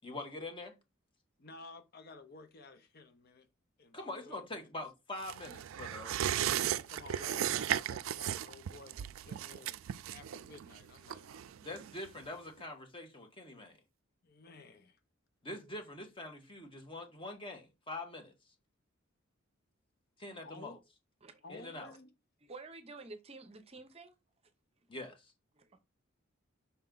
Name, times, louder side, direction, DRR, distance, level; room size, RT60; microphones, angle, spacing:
voice 1, 0.0-0.8 3.9-6.2 11.6-13.8 15.4-18.3 20.2-20.8 21.5-21.9 24.9-25.3, left 2 dB, 25° left, 1.5 m, -44 dB
voice 2, 1.4-3.5 3.8-4.7 6.5-9.8 10.1-11.6 14.2-15.0 20.4-20.8 21.4-22.1, left 3 dB, 50° left, 0.7 m, -53 dB
sound 1, 5.2-12.3 12.6-12.7, right 10 dB, 75° right, 0.3 m, -36 dB
voice 3, 22.4-24.1 25.5-25.8, right 3 dB, 30° right, 0.7 m, -50 dB
5.8 x 4.4 x 3.9 m
head